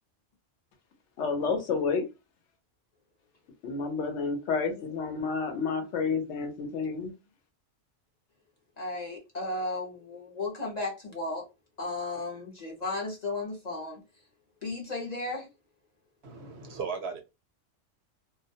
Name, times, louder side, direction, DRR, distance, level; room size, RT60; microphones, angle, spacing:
voice 1, 1.2-2.0 3.6-7.1, left 5 dB, 70° left, 0.9 m, -30 dB
voice 2, 8.8-11.5 11.8-14.0 14.6-15.5, left 2 dB, 40° left, 0.6 m, -34 dB
voice 3, 16.2-17.2, right 5 dB, 65° right, 0.8 m, -36 dB
2.3 x 2.1 x 2.6 m
omnidirectional pair, 1.3 m